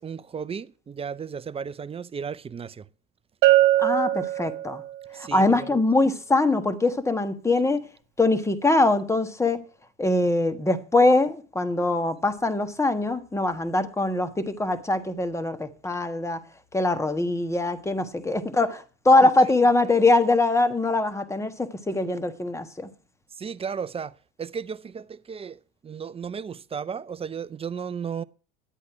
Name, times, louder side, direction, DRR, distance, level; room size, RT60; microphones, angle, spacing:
voice 1, 0.0-2.8 5.1-5.8 19.2-19.3 23.4-24.1 24.4-28.2, right 6 dB, 15° right, 0.5 m, -34 dB
Bell, 3.4-5.0, right 15 dB, 60° right, 1.3 m, -21 dB
voice 2, 3.8-4.8 5.2-7.8 8.2-9.6 10.0-16.4 16.7-22.9, left 2 dB, 10° left, 1.3 m, -22 dB
11.0 x 8.3 x 5.8 m
supercardioid pair, 100°, 35 cm